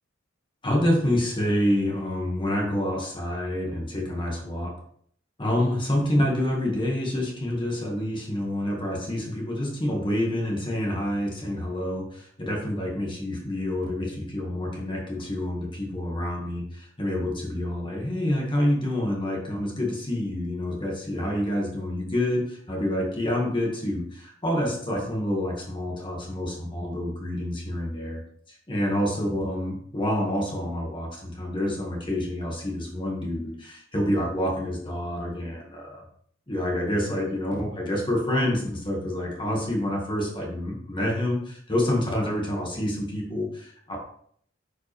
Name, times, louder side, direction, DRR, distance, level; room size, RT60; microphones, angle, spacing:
voice 1, 0.6-4.8 5.4-28.2 28.5-36.0 36.5-44.0, left 1 dB, 25° left, -1 dB, 1.7 m, -27 dB
9.6 x 5.1 x 3.3 m, 0.63 s
head